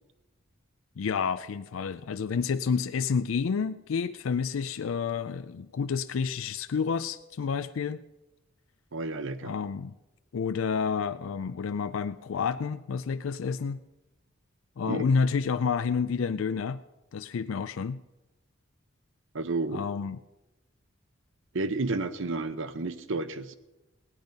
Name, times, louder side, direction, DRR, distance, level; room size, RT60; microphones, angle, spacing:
voice 1, 1.0-8.0 9.4-9.9 10.3-13.8 14.8-16.8 17.1-18.0 19.7-20.2, left 5 dB, 70° left, 12 dB, 0.4 m, -29 dB
voice 2, 8.9-9.5 14.9-15.1 19.3-19.8 21.5-23.6, right 3 dB, 65° right, 12 dB, 0.9 m, -31 dB
17.0 x 10.5 x 5.3 m, 1.0 s
head